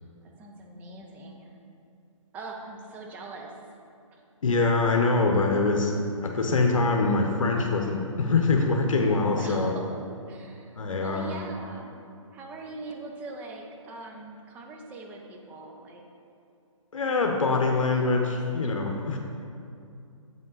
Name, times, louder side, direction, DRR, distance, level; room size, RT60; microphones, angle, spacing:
voice 1, 0.2-1.6 2.3-3.5 4.1-4.2 9.4-10.0 10.3-12.0 12.3-16.0 18.2-18.8, right 3 dB, 10° right, 1 dB, 0.4 m, -42 dB
voice 2, 4.4-5.9 6.2-9.7 10.8-11.4 16.9-19.2, left 3 dB, 75° left, 2 dB, 0.8 m, -24 dB
7.7 x 5.3 x 3.9 m, 2.5 s
hypercardioid pair, 145°, 17 cm